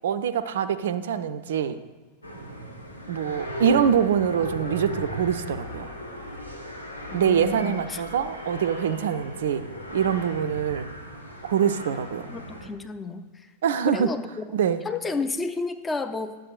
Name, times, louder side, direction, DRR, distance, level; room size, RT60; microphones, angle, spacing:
voice 1, 0.0-1.8 3.1-5.9 7.1-9.7 9.9-10.9 11.4-12.3 13.6-14.1 14.5-14.8, right 8 dB, 60° right, 12 dB, 0.3 m, -24 dB
sound 1, 2.2-12.7, equal, 80° left, 0.8 m, -37 dB
voice 2, 7.1-8.0 12.3-13.5 13.9-14.5 14.8-16.4, left 4 dB, 15° left, 8 dB, 0.4 m, -31 dB
10.0 x 7.6 x 2.4 m, 1.3 s
figure-of-eight pair, 90°, 0 cm